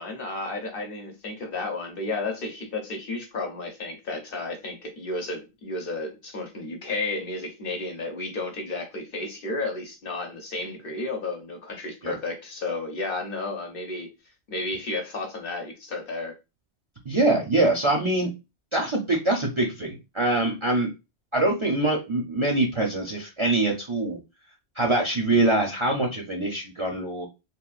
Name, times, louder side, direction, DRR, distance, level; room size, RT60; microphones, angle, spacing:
voice 1, 0.0-14.1 14.5-16.4, left 2 dB, 60° left, 0.9 m, -32 dB
voice 2, 17.1-18.3 18.7-20.9 21.3-24.2 24.8-27.3, right 2 dB, 40° right, 0.4 m, -24 dB
3.5 x 2.3 x 2.3 m
omnidirectional pair, 1.1 m